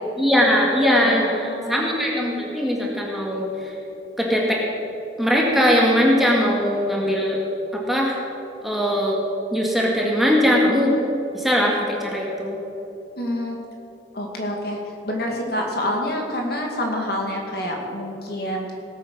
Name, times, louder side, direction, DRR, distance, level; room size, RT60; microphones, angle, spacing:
voice 1, 0.2-3.5 4.2-4.6 5.2-7.4 7.7-8.2 8.6-9.2 9.5-11.0 11.3-12.6, equal, ahead, -3 dB, 1.9 m, -20 dB
voice 2, 0.9-1.9 13.2-13.6 14.1-14.8 15.0-18.7, left 1 dB, 55° left, 0 dB, 2.3 m, -27 dB
18.5 x 8.8 x 6.3 m, 3.0 s
head